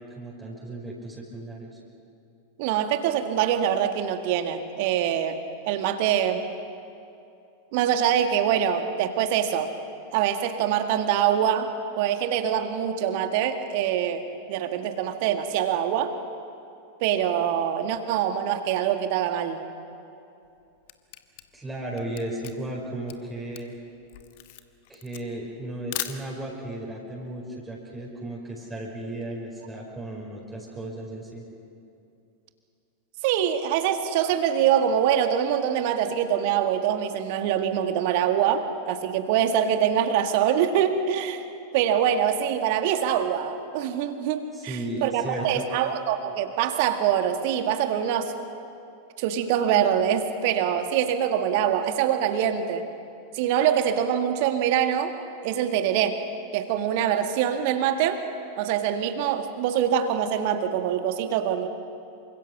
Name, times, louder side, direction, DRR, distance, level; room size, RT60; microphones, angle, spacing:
voice 1, 0.0-1.8 21.5-23.7 24.9-31.4 44.5-45.7, right 1 dB, 10° right, -3 dB, 5.1 m, -35 dB
voice 2, 2.6-5.4 5.7-6.4 7.7-9.7 10.1-11.7 12.0-14.2 14.5-16.1 17.0-19.6 33.2-41.4 41.7-48.3 49.2-52.8 53.3-55.1 55.4-56.2 56.5-58.2 58.6-61.7, right 9 dB, 50° right, 7 dB, 1.9 m, -24 dB
Camera, 20.4-26.7, left 14 dB, 50° left, 1.3 m, -39 dB
28.0 x 25.5 x 6.2 m, 2.7 s
figure-of-eight pair, 90°, 0 cm